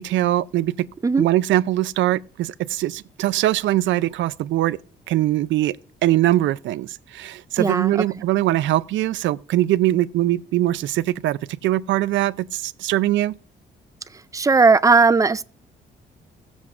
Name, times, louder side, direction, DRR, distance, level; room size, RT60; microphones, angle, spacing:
voice 1, 0.0-0.9 1.2-4.8 5.1-5.7 6.0-13.3, right 14 dB, 85° right, 0.5 m, -22 dB
voice 2, 7.6-7.9 14.3-15.4, right 4 dB, 20° right, 0.3 m, -16 dB
18.0 x 7.2 x 2.5 m
cardioid pair, 135°, 19 cm